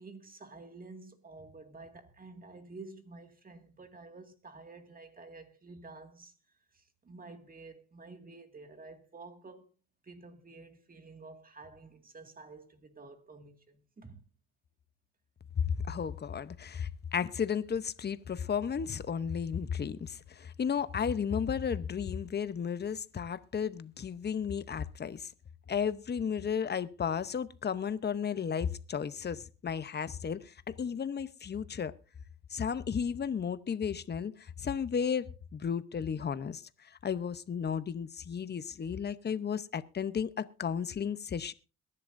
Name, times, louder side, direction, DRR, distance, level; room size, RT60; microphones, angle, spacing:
voice 1, 0.0-6.3 6.7-9.7 10.0-14.2, right 3 dB, 30° right, 2.1 m, -50 dB
voice 2, 15.7-25.3 25.7-31.9 32.5-41.5, left 7 dB, 35° left, 0.8 m, -34 dB
22.0 x 11.0 x 2.6 m
cardioid pair, 90°, 30 cm